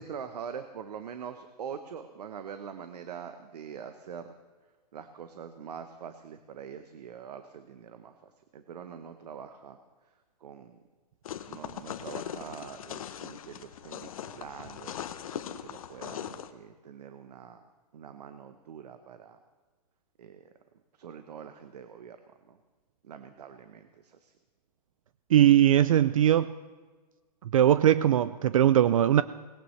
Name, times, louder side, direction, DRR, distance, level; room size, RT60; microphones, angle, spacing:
voice 1, 0.0-4.3 4.9-8.1 8.5-9.8 10.4-10.8 11.5-14.9 15.3-17.6 17.9-19.4 20.2-20.4 21.0-22.2 22.5-22.6 23.0-24.3, right 7 dB, 70° right, 9 dB, 0.9 m, -44 dB
sound 1, 11.2-16.5, left 9 dB, 55° left, 0.9 m, -40 dB
voice 2, 25.3-26.5 27.5-29.2, right 11 dB, 55° right, 14 dB, 0.4 m, -20 dB
18.5 x 17.5 x 3.2 m, 1.4 s
hypercardioid pair, 170°, 21 cm